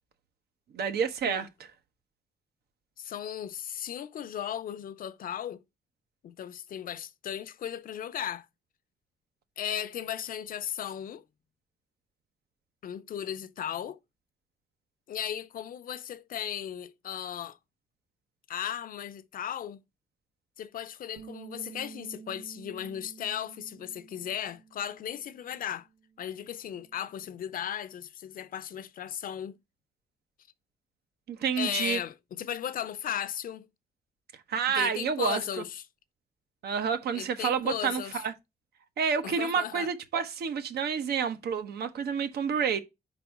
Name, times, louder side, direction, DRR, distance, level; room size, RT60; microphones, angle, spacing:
voice 1, 0.7-1.5 31.3-32.0 34.5-35.4 36.6-38.3 39.0-42.8, right 6 dB, 90° right, 1.0 m, -29 dB
voice 2, 3.0-5.6 6.2-8.5 9.6-11.2 12.8-14.0 15.1-17.6 18.5-19.8 20.6-25.9 26.2-29.6 31.6-33.7 34.7-35.8 37.1-38.2 39.2-39.9, left 9 dB, 60° left, 0.5 m, -36 dB
Bass guitar, 21.2-27.4, right 6 dB, 50° right, 1.0 m, -51 dB
5.3 x 4.1 x 5.8 m
wide cardioid pair, 170°, 16 cm